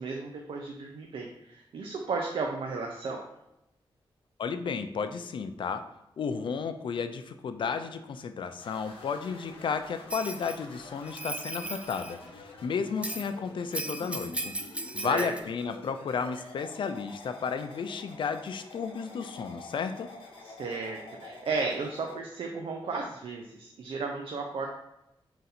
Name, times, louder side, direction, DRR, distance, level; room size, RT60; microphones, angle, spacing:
voice 1, 0.0-3.2 14.9-15.3 20.4-24.7, right 4 dB, 70° right, 1 dB, 0.5 m, -34 dB
voice 2, 4.4-5.8 6.2-14.5 14.9-20.2, left 6 dB, 60° left, 9 dB, 0.4 m, -33 dB
sound 1, 8.6-22.2, left 3 dB, 80° left, 0.9 m, -48 dB
Bell, 10.1-10.6 11.0-12.1 13.0-13.3 13.7-15.4, right 2 dB, 15° right, 0.3 m, -37 dB
3.9 x 2.5 x 4.1 m, 0.86 s
wide cardioid pair, 95°, 9 cm